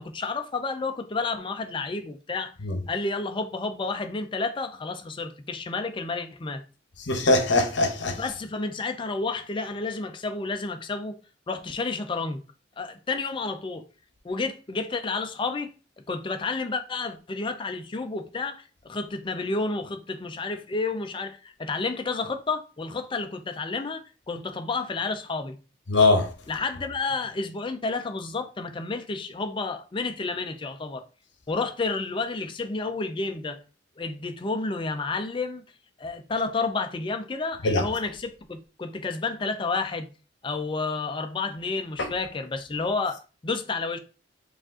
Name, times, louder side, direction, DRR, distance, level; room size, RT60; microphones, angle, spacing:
voice 1, 0.0-2.5 2.9-6.6 8.2-11.2 11.5-12.4 12.8-13.8 14.2-15.7 16.1-25.6 26.5-31.1 31.5-33.6 34.0-35.6 36.0-40.1 40.4-44.0, left 3 dB, 25° left, 0.4 m, -30 dB
voice 2, 7.0-8.2 25.9-26.3 37.6-37.8 42.0-42.1, left 2 dB, 70° left, 0.8 m, -22 dB
4.9 x 2.5 x 3.6 m
head